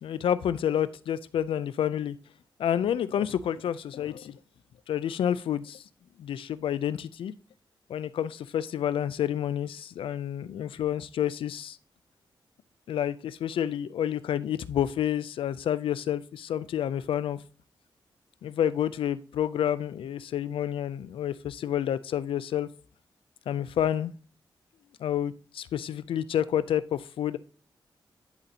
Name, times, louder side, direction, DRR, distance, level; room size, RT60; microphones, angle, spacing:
voice 1, 0.0-2.2 2.6-4.4 4.9-5.8 6.2-7.3 7.9-11.8 12.9-17.4 18.4-22.7 23.5-24.1 25.0-27.4, left 10 dB, 90° left, 0.3 m, -29 dB
11.0 x 4.1 x 2.7 m
cardioid pair, 65°, 9 cm